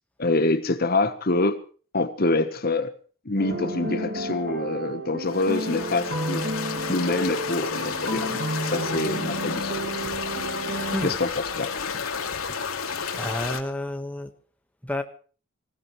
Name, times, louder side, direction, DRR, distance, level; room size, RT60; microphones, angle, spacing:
voice 1, 0.2-1.6 1.9-2.9 3.2-6.5 6.9-9.9 11.0-11.3 11.6-11.7, left 2 dB, 45° left, 10 dB, 1.2 m, -26 dB
sound 1, 3.4-11.1, right 1 dB, 50° right, 2.6 m, -31 dB
sound 2, 5.3-13.6, left 6 dB, 85° left, 2.6 m, -31 dB
voice 2, 13.2-14.3 14.8-15.0, left 1 dB, 5° left, 5 dB, 1.5 m, -31 dB
25.5 x 16.0 x 3.3 m, 0.40 s
head